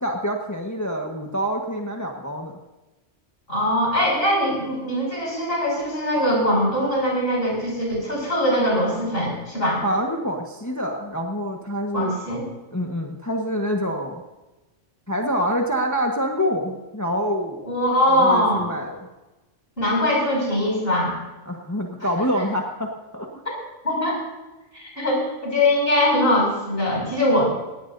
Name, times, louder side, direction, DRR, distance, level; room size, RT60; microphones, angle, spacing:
voice 1, 0.0-2.6 9.8-12.2 12.7-14.2 15.1-17.6 18.1-19.1 21.5-23.4, equal, 15° left, 1 dB, 1.3 m, -26 dB
voice 2, 3.5-9.8 11.9-12.5 17.6-18.6 19.8-21.1 23.4-23.5 23.8-24.2 24.7-27.5, left 1 dB, 50° left, -3 dB, 6.6 m, -22 dB
19.0 x 17.0 x 2.7 m, 1.1 s
omnidirectional pair, 1.3 m